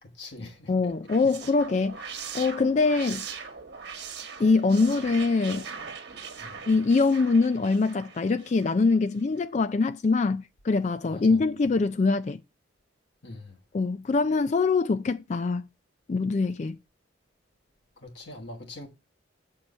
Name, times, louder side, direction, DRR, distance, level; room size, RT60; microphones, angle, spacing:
voice 1, 0.0-0.9 6.4-6.6 11.1-11.4 13.2-13.6 18.0-18.9, left 2 dB, 60° left, 1.2 m, -43 dB
voice 2, 0.7-2.0 2.3-3.3 4.4-5.7 6.7-12.4 13.7-15.6 16.1-16.8, left 4 dB, 35° left, 0.3 m, -23 dB
sound 1, 0.9-8.9, right 6 dB, 55° right, 1.3 m, -41 dB
7.5 x 4.6 x 5.5 m
head